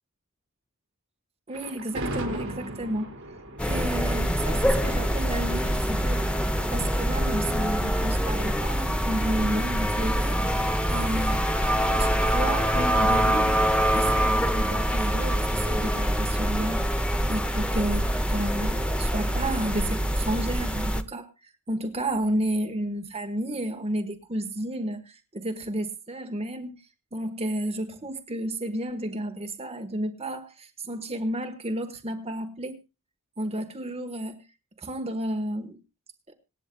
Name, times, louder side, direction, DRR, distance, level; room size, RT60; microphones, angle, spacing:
voice 1, 1.5-3.1 3.7-6.2 6.7-11.5 11.8-26.7 27.1-32.8 33.4-34.4 34.8-35.8 36.3-36.4, right 1 dB, 30° right, 5 dB, 1.3 m, -32 dB
Thunder, 1.5-8.7, right 1 dB, 60° right, 4.9 m, -38 dB
sound 1, 3.6-21.0, equal, 5° left, 0.6 m, -25 dB
26.5 x 9.0 x 2.3 m, 0.28 s
head